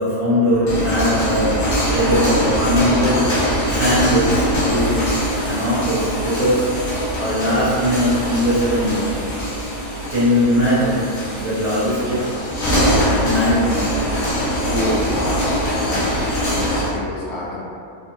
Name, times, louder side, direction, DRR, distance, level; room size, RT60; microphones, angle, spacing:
voice 1, 0.0-1.7 1.9-3.3 3.7-5.1 5.4-6.7 7.2-9.3 10.1-11.1 11.4-12.2 13.1-14.0, equal, 55° right, -12 dB, 0.4 m, -20 dB
sound 1, 0.5-17.0, equal, 65° left, 1.2 m, -22 dB
sound 2, 4.8-16.3, left 1 dB, 45° left, 1.1 m, -40 dB
voice 2, 14.6-17.6, left 1 dB, 90° left, -5 dB, 1.3 m, -28 dB
3.5 x 2.3 x 2.9 m, 2.4 s
omnidirectional pair, 1.6 m